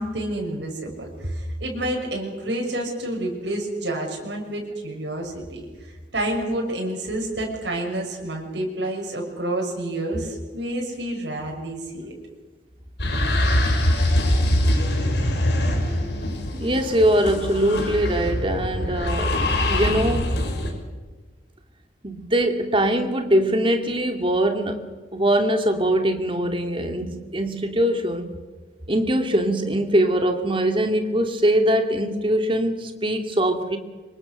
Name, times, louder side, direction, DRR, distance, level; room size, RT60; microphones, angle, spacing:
voice 1, 0.0-12.1, right 1 dB, 90° right, -1 dB, 6.3 m, -29 dB
sound 1, 13.0-20.7, left 1 dB, 75° left, 5.6 m, -23 dB
voice 2, 16.5-20.3 22.0-28.3 28.9-33.8, right 1 dB, 30° right, 5 dB, 2.4 m, -22 dB
25.5 x 23.0 x 6.7 m, 1.3 s
head